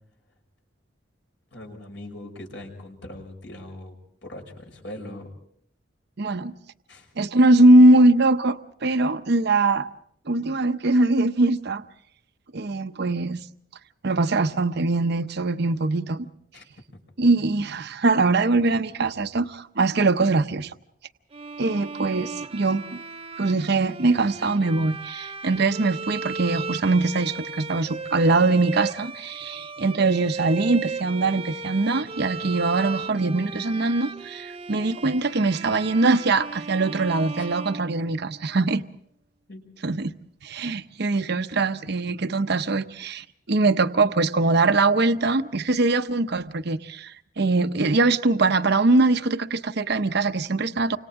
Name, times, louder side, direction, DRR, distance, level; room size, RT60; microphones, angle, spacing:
voice 1, 1.5-3.9 4.2-5.3 6.9-7.1 16.5-16.6 37.3-37.5 39.5-39.6, left 1 dB, 70° left, 6.0 m, -40 dB
voice 2, 6.2-6.5 7.2-9.9 10.3-11.8 12.5-13.4 14.0-16.3 17.2-20.7 21.6-23.0 23.4-38.8 39.8-40.1 40.4-51.0, right 2 dB, 60° right, 0.8 m, -22 dB
Bowed string instrument, 21.3-38.5, right 4 dB, 30° right, 0.7 m, -36 dB
29.5 x 26.0 x 3.7 m
head